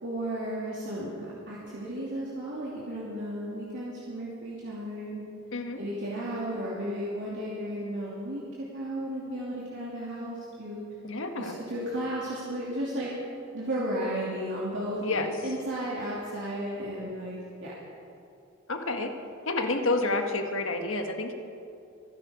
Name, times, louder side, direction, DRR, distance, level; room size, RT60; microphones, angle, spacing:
voice 1, 0.0-5.2 5.8-8.4 8.7-10.8 11.4-13.1 13.5-17.3 17.6-17.7, right 1 dB, 60° right, -6 dB, 2.8 m, -34 dB
voice 2, 11.0-11.6 15.0-15.3 18.7-19.1 19.4-21.3, left 2 dB, 65° left, 5 dB, 1.5 m, -29 dB
25.0 x 11.0 x 5.2 m, 2.6 s
head